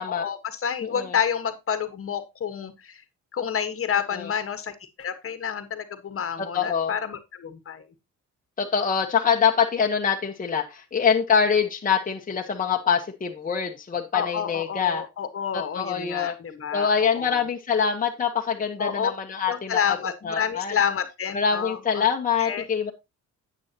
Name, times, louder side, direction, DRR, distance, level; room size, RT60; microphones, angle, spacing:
voice 1, 0.0-3.0 3.3-7.9 14.1-17.4 18.8-19.1 19.5-22.0 22.4-22.7, left 8 dB, 45° left, 11 dB, 1.4 m, -29 dB
voice 2, 0.8-1.1 4.1-4.3 6.4-6.9 8.6-15.0 15.5-16.4 16.7-19.8 20.2-20.8 21.3-22.9, left 6 dB, 25° left, 2 dB, 1.1 m, -24 dB
9.8 x 8.6 x 2.8 m, 0.24 s
cardioid pair, 90°, 30 cm